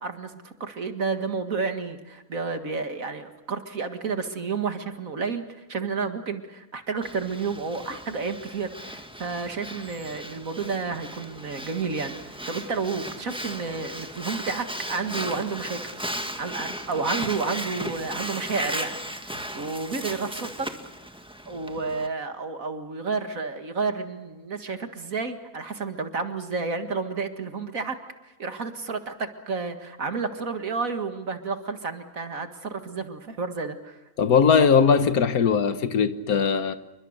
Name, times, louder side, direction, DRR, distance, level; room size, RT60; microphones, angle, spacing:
voice 1, 0.0-16.0 16.4-20.7 21.5-28.0 28.2-34.0, right 4 dB, 70° right, 2.3 m, -31 dB
Breathing, 7.0-22.1, equal, 5° right, 1.7 m, -36 dB
voice 2, 34.2-36.8, left 6 dB, 85° left, 1.7 m, -20 dB
29.5 x 23.5 x 6.6 m
omnidirectional pair, 1.5 m